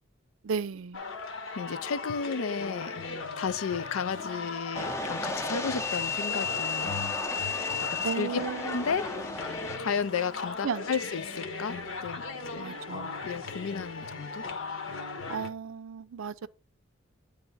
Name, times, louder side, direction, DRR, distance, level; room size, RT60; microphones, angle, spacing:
voice 1, 0.4-1.0 8.0-8.8 10.6-10.9 12.6-13.1 15.3-16.5, right 6 dB, 75° right, 0.4 m, -34 dB
sound 1, 0.9-15.5, left 4 dB, 70° left, 1.2 m, -38 dB
voice 2, 1.6-3.0 3.4-7.0 7.9-9.1 9.8-12.7 13.2-14.4, left 6 dB, 85° left, 0.5 m, -33 dB
sound 2, 2.6-15.5, left 4 dB, 50° left, 0.9 m, -48 dB
sound 3, 4.7-9.8, left 4 dB, 15° left, 0.6 m, -33 dB
9.1 x 3.3 x 5.4 m
head